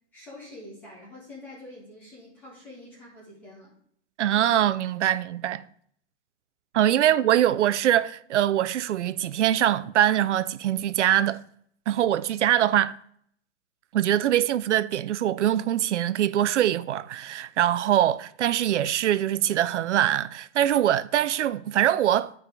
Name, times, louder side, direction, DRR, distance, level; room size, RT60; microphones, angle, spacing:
voice 1, 0.1-3.7 7.0-7.2, left 1 dB, 5° left, 0.4 m, -45 dB
voice 2, 4.2-5.6 6.7-11.4 11.9-13.0 13.9-22.3, right 11 dB, 75° right, 0.5 m, -23 dB
10.0 x 4.8 x 3.3 m
hypercardioid pair, 165°, 36 cm